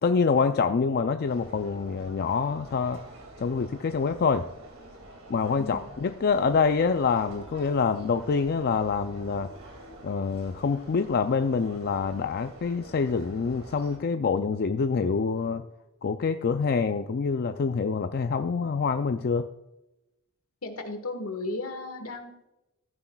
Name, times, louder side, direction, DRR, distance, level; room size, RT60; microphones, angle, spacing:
voice 1, 0.0-3.0 3.4-4.5 5.3-9.5 10.0-15.6 16.0-19.5, left 5 dB, 45° left, 8 dB, 0.4 m, -26 dB
sound 1, 1.2-14.0, right 1 dB, 70° right, 2.3 m, -47 dB
voice 2, 5.6-5.9 20.6-22.5, left 2 dB, 75° left, 7 dB, 1.6 m, -35 dB
14.5 x 9.8 x 2.3 m, 0.97 s
head